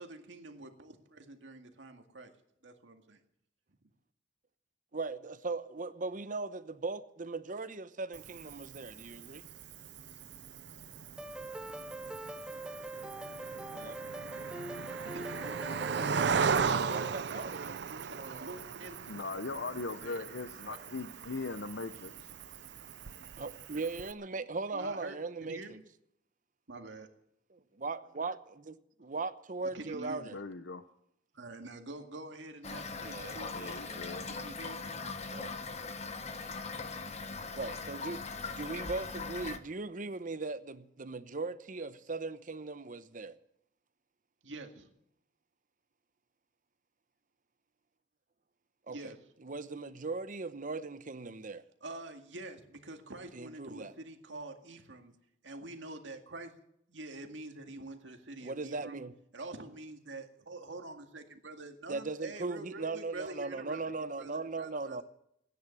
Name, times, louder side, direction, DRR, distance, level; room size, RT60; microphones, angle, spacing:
voice 1, 0.0-2.3 2.6-3.2 14.8-16.3 16.6-19.0 20.0-20.3 20.7-21.0 24.7-25.8 26.7-27.1 29.6-30.3 31.3-33.5 34.3-34.8 44.4-44.9 48.9-49.2 51.8-55.1 55.4-56.5 56.9-59.0 59.3-65.0, right 2 dB, 90° right, 2.0 m, -46 dB
voice 2, 4.9-9.4 13.7-14.0 16.8-18.5 23.4-25.8 27.5-30.4 33.0-34.1 35.3-35.5 37.5-38.2 38.5-43.4 48.9-49.1 49.4-51.6 53.3-53.9 58.4-59.1 61.9-65.0, right 3 dB, 45° right, 0.8 m, -39 dB
Cricket, 8.1-24.1, right 6 dB, 65° right, 0.6 m, -37 dB
sound 1, 11.2-17.1, right 1 dB, 5° right, 0.7 m, -43 dB
voice 3, 19.1-22.3 30.3-30.8 33.5-34.2, left 3 dB, 70° left, 0.8 m, -39 dB
Toilet flush / Fill (with liquid), 32.6-39.6, left 4 dB, 35° left, 1.1 m, -40 dB
16.0 x 10.5 x 8.4 m
head